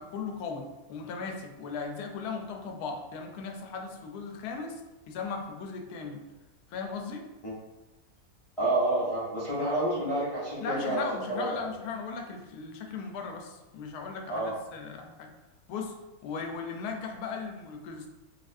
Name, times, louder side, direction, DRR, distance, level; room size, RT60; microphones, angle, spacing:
voice 1, 0.0-4.8 5.1-6.2 6.7-7.2 10.6-15.3 15.7-15.9 16.2-18.1, left 4 dB, 80° left, 3 dB, 1.1 m, -37 dB
voice 2, 8.6-11.1 11.4-11.6 14.3-14.5, right 1 dB, 35° left, -9 dB, 0.6 m, -29 dB
4.1 x 2.6 x 2.5 m, 1.1 s
omnidirectional pair, 1.7 m